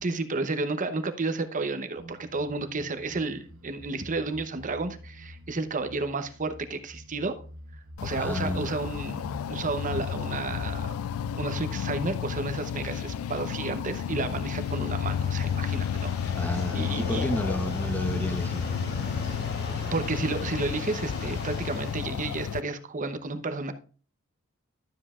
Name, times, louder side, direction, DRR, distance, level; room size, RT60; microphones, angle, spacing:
voice 1, 0.0-7.4 8.0-10.9 11.4-17.3 19.9-23.7, right 3 dB, 40° right, 0.8 m, -32 dB
sound 1, 2.0-14.1, equal, 80° right, 1.2 m, -47 dB
sound 2, 8.0-22.6, left 8 dB, 80° left, 0.3 m, -32 dB
voice 2, 8.2-8.7 16.3-18.7, equal, 10° left, 0.7 m, -31 dB
sound 3, 14.1-22.2, equal, 50° left, 2.3 m, -39 dB
12.0 x 7.6 x 2.4 m
head